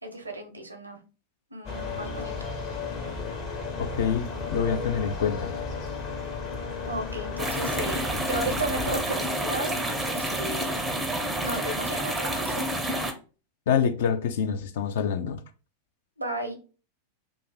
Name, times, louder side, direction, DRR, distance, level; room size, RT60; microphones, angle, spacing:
voice 1, 0.0-1.0 1.5-2.5 6.9-10.8 11.4-12.7 16.2-16.6, right 1 dB, 80° right, 0.6 m, -34 dB
sound 1, 1.7-9.0, left 4 dB, 35° left, 0.8 m, -34 dB
voice 2, 3.8-5.5 13.7-15.4, left 7 dB, 55° left, 0.4 m, -26 dB
sound 2, 7.4-13.1, right 1 dB, 10° right, 0.5 m, -29 dB
2.4 x 2.3 x 3.8 m
figure-of-eight pair, 90°, 0 cm